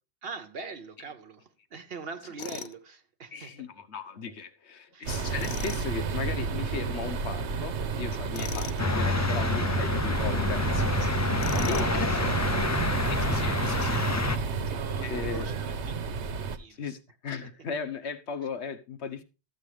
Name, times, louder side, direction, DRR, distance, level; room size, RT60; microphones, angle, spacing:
voice 1, 0.2-3.7 4.9-5.2 8.4-8.9 11.0-11.1 11.4-12.1 14.1-15.9 16.3-16.9, right 4 dB, 65° right, 1.0 m, -43 dB
Tools, 2.4-2.8 5.4-5.8 8.3-8.8 11.4-12.0, left 7 dB, 50° left, 0.7 m, -38 dB
voice 2, 3.3-11.3 11.7-12.1 13.1-14.0 15.0-15.6 16.8-17.0 17.2-19.2, left 5 dB, 80° left, 1.4 m, -37 dB
sound 1, 5.1-16.6, right 5 dB, 90° right, 1.2 m, -31 dB
sound 2, 8.8-14.4, left 3 dB, 25° left, 0.3 m, -28 dB
13.0 x 8.2 x 3.3 m
omnidirectional pair, 1.1 m